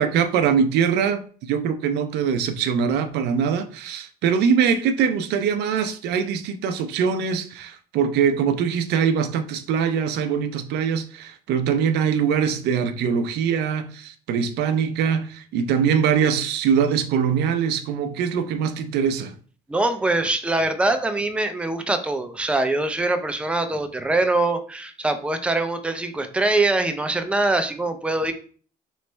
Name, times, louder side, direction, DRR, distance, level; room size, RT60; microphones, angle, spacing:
voice 1, 0.0-19.3, right 7 dB, 80° right, 0.5 m, -22 dB
voice 2, 19.7-28.3, right 2 dB, 5° right, 0.5 m, -23 dB
3.2 x 3.1 x 4.3 m
cardioid pair, 110°, 17 cm